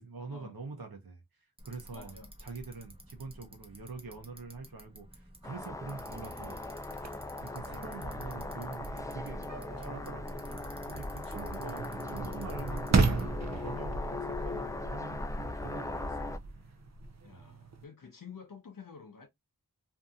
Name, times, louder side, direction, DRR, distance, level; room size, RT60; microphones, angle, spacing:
voice 1, 0.0-6.6 6.9-9.5 9.8-10.4 10.9-13.2 13.6-16.3 16.6-16.8 17.3-17.4, right 4 dB, 80° right, 0.8 m, -45 dB
Bicycle, 1.6-13.3, equal, 15° right, 0.9 m, -53 dB
voice 2, 1.9-2.3 17.2-19.3, left 6 dB, 65° left, 0.5 m, -49 dB
sound 1, 5.4-16.4, left 2 dB, 10° left, 0.3 m, -39 dB
sound 2, 6.9-17.8, right 3 dB, 50° right, 0.5 m, -35 dB
2.6 x 2.6 x 2.3 m
wide cardioid pair, 40°, 36 cm